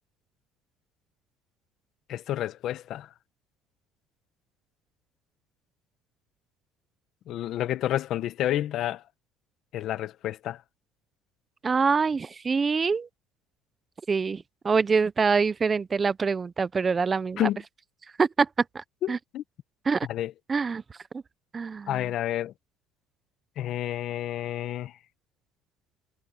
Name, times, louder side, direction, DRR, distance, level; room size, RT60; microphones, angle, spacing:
voice 1, 2.1-3.1 7.3-9.0 9.7-10.6 17.4-17.6 19.0-19.4 20.1-20.3 21.9-22.5 23.6-24.9, left 12 dB, 55° left, 1.2 m, -30 dB
voice 2, 11.6-13.1 14.1-17.5 18.2-18.5 18.7-19.2 19.9-20.1 20.5-20.8 21.1-21.2 21.5-22.0, right 5 dB, 25° right, 0.8 m, -25 dB
cardioid pair, 115°, 0 cm